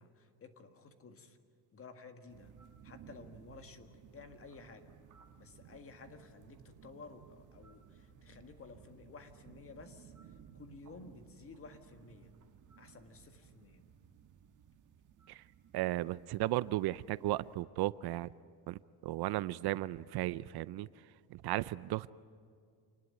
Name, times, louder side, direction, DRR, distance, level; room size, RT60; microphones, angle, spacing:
voice 1, 0.0-1.4 1.7-2.5 2.8-5.0 5.4-10.1 10.5-12.3 12.8-13.8, left 4 dB, 30° left, 8 dB, 1.7 m, -54 dB
sound 1, 2.3-17.6, right 8 dB, 45° right, 1.5 m, -59 dB
voice 2, 15.7-18.3 18.7-20.9 21.3-22.1, right 16 dB, 60° right, 18 dB, 0.5 m, -35 dB
27.0 x 19.5 x 9.5 m, 2.3 s
cardioid pair, 160°, 43 cm